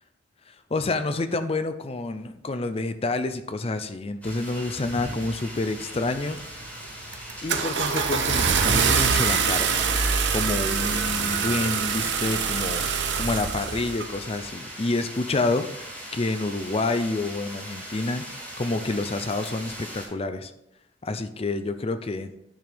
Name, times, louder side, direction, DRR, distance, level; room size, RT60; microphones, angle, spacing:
voice 1, 0.7-6.4 7.4-20.5 21.0-22.3, left 2 dB, 30° left, 10 dB, 0.6 m, -28 dB
sound 1, 4.2-20.0, equal, 10° left, 3.5 m, -40 dB
Car / Engine starting, 6.3-6.7 7.1-14.1, right 6 dB, 65° right, 0.9 m, -25 dB
sound 2, 7.7-13.4, right 4 dB, 45° right, 2.1 m, -35 dB
10.5 x 6.2 x 3.5 m, 0.83 s
head